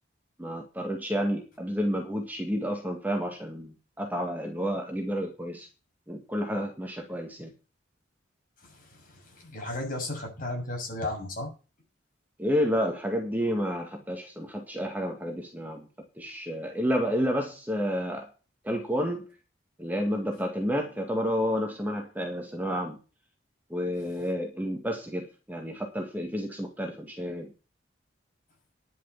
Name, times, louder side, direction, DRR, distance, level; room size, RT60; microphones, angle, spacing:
voice 1, 0.4-5.7 6.1-7.5 12.4-15.9 16.2-18.3 18.6-19.3 19.8-23.0 23.7-27.5, equal, 10° right, 2 dB, 1.9 m, -30 dB
voice 2, 8.7-11.5, left 2 dB, 45° left, 1 dB, 6.5 m, -35 dB
10.5 x 7.4 x 7.1 m, 0.33 s
head